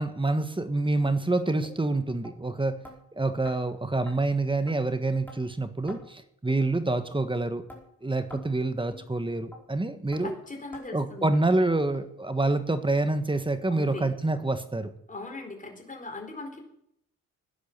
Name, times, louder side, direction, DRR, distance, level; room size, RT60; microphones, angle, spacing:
voice 1, 0.0-2.8 3.2-7.6 8.0-10.3 10.9-14.9, right 2 dB, 15° right, 10 dB, 1.5 m, -27 dB
sound 1, 1.0-1.2 1.6-1.8 2.2-2.3 2.8-3.0 3.4-3.6 4.1-4.2 4.7-4.8 5.3-5.4 5.9-6.0 6.5-6.6 7.1-7.2 7.7-7.8 8.3-8.5 8.9-9.0 9.5-9.6 10.1-10.2 10.7-10.9 11.3-11.4 11.9-12.0 12.5-12.6 13.2-13.3 13.8-13.9, left 1 dB, 5° left, 4.8 m, -46 dB
voice 2, 10.2-11.4 13.7-14.1 15.1-16.6, left 2 dB, 20° left, 3 dB, 4.4 m, -39 dB
16.5 x 10.0 x 7.4 m, 0.74 s
cardioid pair, 90°, 35 cm